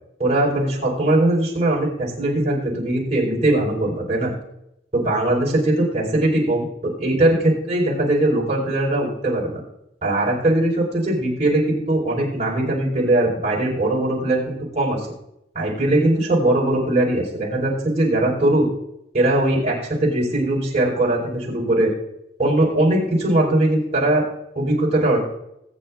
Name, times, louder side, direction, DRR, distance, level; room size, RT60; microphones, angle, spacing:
voice 1, 0.2-4.3 4.9-9.6 10.0-15.0 15.5-18.7 19.1-21.9 22.4-24.2 24.5-25.2, right 1 dB, 35° right, -4 dB, 4.2 m, -20 dB
20.5 x 9.3 x 2.4 m, 0.82 s
head